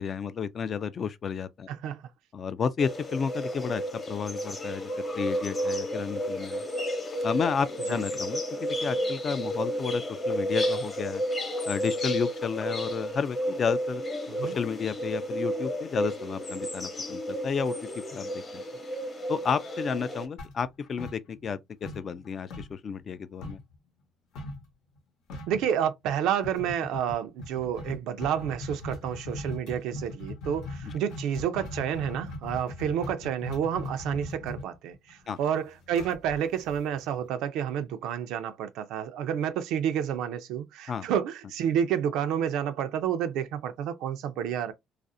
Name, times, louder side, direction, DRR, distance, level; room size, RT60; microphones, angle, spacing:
voice 1, 0.0-1.7 2.3-3.8 4.1-4.9 5.2-6.7 7.2-11.2 11.7-14.0 14.4-17.7 18.1-18.6 19.3-23.6 30.8-30.9 35.3-35.4 40.9-41.0, left 6 dB, 40° left, 0.3 m, -32 dB
voice 2, 1.7-2.0 7.9-8.0 14.3-14.6 25.5-44.7, right 9 dB, 85° right, 0.4 m, -30 dB
sound 1, 2.8-20.3, equal, 25° left, 0.8 m, -32 dB
sound 2, 20.4-21.6 21.8-23.7 24.4-24.7 25.0-25.1 25.3-25.7 26.4-37.2, left 2 dB, 85° left, 0.9 m, -39 dB
2.4 x 2.0 x 2.6 m
cardioid pair, 120°, 0 cm